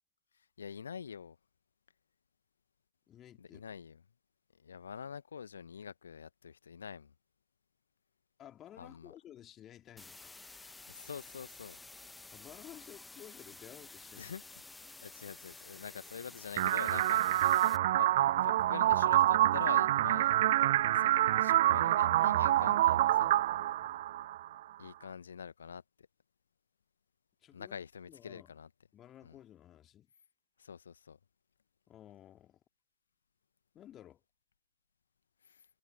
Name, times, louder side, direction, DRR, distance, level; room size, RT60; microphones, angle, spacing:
voice 1, 0.6-1.4 3.4-4.0 4.5-7.1 8.8-9.1 10.9-11.8 14.2-14.4 15.0-18.1 18.4-20.3 20.9-23.3 24.8-26.1 27.5-28.7 29.2-29.4 30.6-31.2 35.4-35.6, left 7 dB, 70° left, 1.5 m, -46 dB
voice 2, 3.1-3.6 8.4-10.4 12.3-14.3 17.6-17.8 20.7-20.9 23.8-24.0 27.4-27.8 28.1-28.5 28.9-30.1 31.9-32.6 33.7-34.2, left 11 dB, 30° left, 3.0 m, -54 dB
sound 1, 10.0-17.8, left 3 dB, 10° left, 1.2 m, -52 dB
sound 2, 16.6-24.5, right 14 dB, 55° right, 0.3 m, -27 dB
figure-of-eight pair, 90°, 0 cm